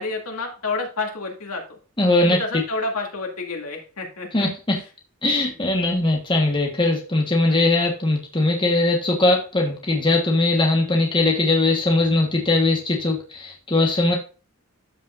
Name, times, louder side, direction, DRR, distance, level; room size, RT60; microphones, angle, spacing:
voice 1, 0.0-1.8 2.2-4.5 7.5-7.6, left 3 dB, 80° left, 1 dB, 2.4 m, -29 dB
voice 2, 2.0-2.4 4.3-4.8 5.2-14.1, left 2 dB, 20° left, 1 dB, 1.3 m, -20 dB
13.0 x 5.3 x 2.5 m, 0.35 s
head